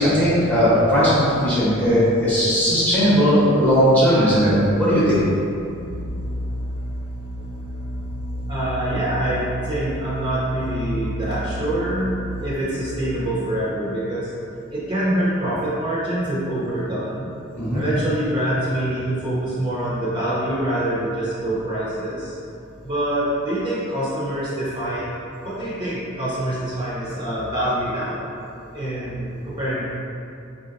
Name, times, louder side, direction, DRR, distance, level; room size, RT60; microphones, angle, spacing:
voice 1, 0.0-4.5 4.8-5.2 17.5-17.8, equal, 10° left, -10 dB, 0.9 m, -17 dB
sound 1, 5.5-12.6, equal, 45° left, 0.8 m, -31 dB
voice 2, 8.5-12.1 12.4-14.3 14.7-17.3 17.7-22.4 22.8-28.3 28.7-29.8, right 1 dB, 25° right, -10 dB, 0.7 m, -25 dB
4.3 x 2.8 x 2.5 m, 2.6 s
head